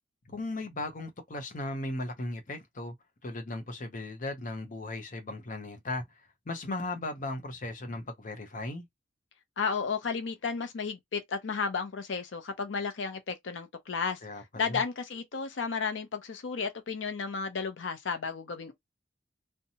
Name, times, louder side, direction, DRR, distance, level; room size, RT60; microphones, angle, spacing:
voice 1, 0.3-2.9 3.2-8.8 14.2-14.8, left 2 dB, 45° left, 0.7 m, -37 dB
voice 2, 9.6-14.2 14.6-18.7, left 5 dB, 90° left, 0.6 m, -33 dB
2.7 x 2.1 x 2.8 m
head